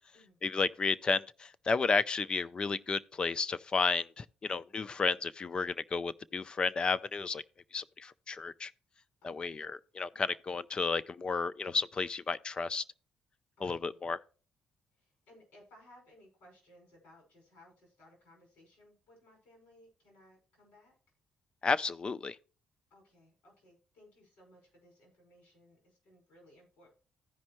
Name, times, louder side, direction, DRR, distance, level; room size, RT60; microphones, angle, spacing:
voice 1, 0.4-7.4 7.7-8.7 9.2-12.8 13.6-14.2 21.6-22.4, left 4 dB, 35° left, 0.5 m, -32 dB
voice 2, 9.2-9.7 13.6-14.0 14.9-21.0 22.9-26.9, left 1 dB, 80° left, 5.5 m, -61 dB
15.0 x 5.3 x 3.0 m
cardioid pair, 90°, 3 cm